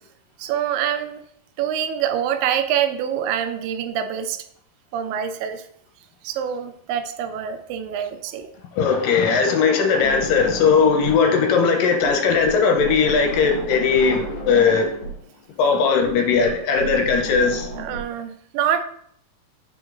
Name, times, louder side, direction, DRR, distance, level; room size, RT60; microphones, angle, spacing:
voice 1, 0.4-1.2 1.6-4.4 4.9-5.7 6.2-8.5 17.7-18.8, right 9 dB, 85° right, 9 dB, 2.2 m, -25 dB
voice 2, 8.8-14.9 15.6-17.7, left 5 dB, 80° left, 4 dB, 2.4 m, -18 dB
sound 1, 10.0-11.3 11.5-18.0, right 1 dB, 65° left, 2.1 m, -33 dB
5.1 x 5.0 x 3.8 m, 0.64 s
omnidirectional pair, 4.0 m